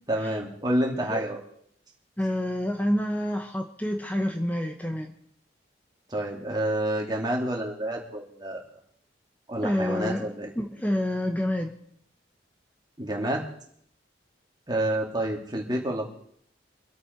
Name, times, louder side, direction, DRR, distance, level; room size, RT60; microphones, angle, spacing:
voice 1, 0.1-1.4 6.1-8.6 9.5-10.5 13.0-13.5 14.7-16.1, right 1 dB, 20° right, -1 dB, 2.7 m, -28 dB
voice 2, 2.2-5.1 9.6-11.8, left 1 dB, 10° left, 3 dB, 1.0 m, -28 dB
25.5 x 8.6 x 4.6 m, 0.65 s
head